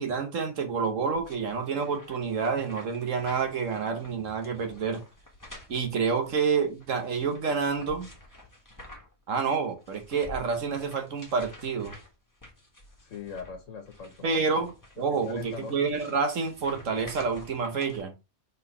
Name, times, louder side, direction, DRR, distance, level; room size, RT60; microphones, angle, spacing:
voice 1, 0.0-5.0 5.7-8.1 9.3-11.9 14.2-14.7 15.0-18.1, right 5 dB, 85° right, 1.6 m, -28 dB
sound 1, 1.1-9.2 9.5-18.0, left 1 dB, 15° left, 1.7 m, -50 dB
voice 2, 13.0-14.7 15.2-15.7, left 5 dB, 85° left, 1.5 m, -41 dB
4.4 x 4.1 x 5.5 m
omnidirectional pair, 1.3 m